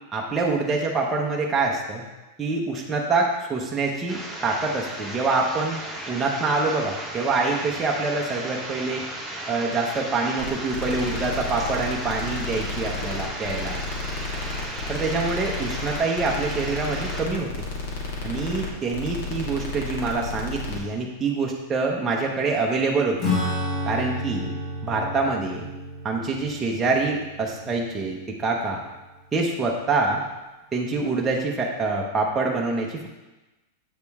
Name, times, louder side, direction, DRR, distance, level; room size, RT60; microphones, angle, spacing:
voice 1, 0.1-2.0 2.4-5.8 6.1-9.1 9.5-13.8 14.9-17.5 18.2-23.3 23.9-24.5 24.8-25.7 26.0-28.2 28.4-28.8 29.3-30.2 30.7-33.1, right 3 dB, 15° right, -2 dB, 0.8 m, -25 dB
sound 1, 4.1-17.2, right 1 dB, 5° left, 1.1 m, -35 dB
sound 2, 10.4-20.8, left 3 dB, 60° left, 1.7 m, -32 dB
Acoustic guitar / Strum, 23.2-29.1, left 1 dB, 35° left, 1.7 m, -31 dB
8.1 x 5.0 x 3.5 m, 1.1 s
supercardioid pair, 160°, 0 cm